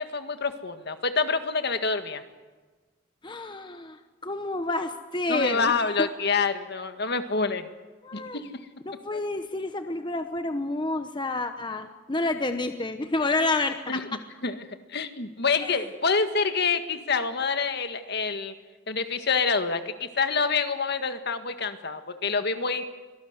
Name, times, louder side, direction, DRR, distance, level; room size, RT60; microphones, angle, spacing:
voice 1, 0.0-2.2 5.3-7.7 8.1-8.5 9.1-9.2 13.9-14.0 14.4-14.6 14.9-18.5 18.9-22.8, left 4 dB, 55° left, 8 dB, 1.7 m, -27 dB
voice 2, 3.2-6.1 8.0-8.4 8.9-14.0 15.6-15.9, left 2 dB, 25° left, 7 dB, 1.0 m, -29 dB
25.0 x 19.0 x 8.1 m, 1.3 s
head